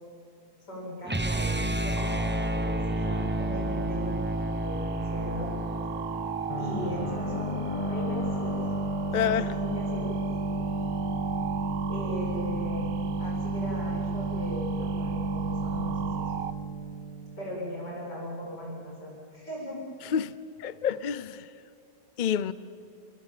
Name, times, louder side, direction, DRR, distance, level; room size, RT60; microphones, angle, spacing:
voice 1, 0.6-4.2 4.6-5.5 6.6-8.6 9.2-10.1 11.9-12.9 13.2-16.1 17.4-19.8, equal, 85° left, 8.2 m, -38 dB
sound 1, 1.1-7.1, right 1 dB, 15° right, 0.4 m, -30 dB
sound 2, 2.0-16.5, right 10 dB, 85° right, 1.5 m, -40 dB
sound 3, 6.5-18.0, right 2 dB, 20° left, 1.1 m, -31 dB
voice 2, 9.1-9.5 20.0-21.5 22.2-22.5, left 8 dB, 60° left, 0.4 m, -28 dB
28.5 x 22.5 x 7.6 m
omnidirectional pair, 1.8 m